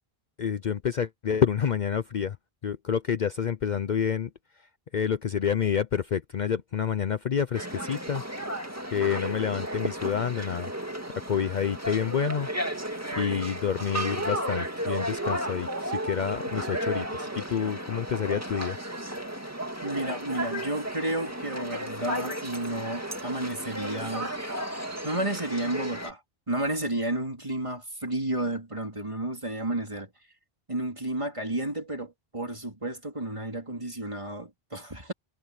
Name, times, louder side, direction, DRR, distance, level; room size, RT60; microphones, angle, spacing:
voice 1, 0.4-2.4 2.6-8.2 8.9-10.7 11.1-12.5 13.1-18.8, left 7 dB, 50° left, 0.7 m, -28 dB
sound 1, 7.5-26.1, right 1 dB, 15° right, 2.2 m, -34 dB
voice 2, 19.8-24.3 24.7-26.2 26.5-30.1 30.7-35.1, right 1 dB, 30° right, 3.1 m, -32 dB
omnidirectional pair, 1.0 m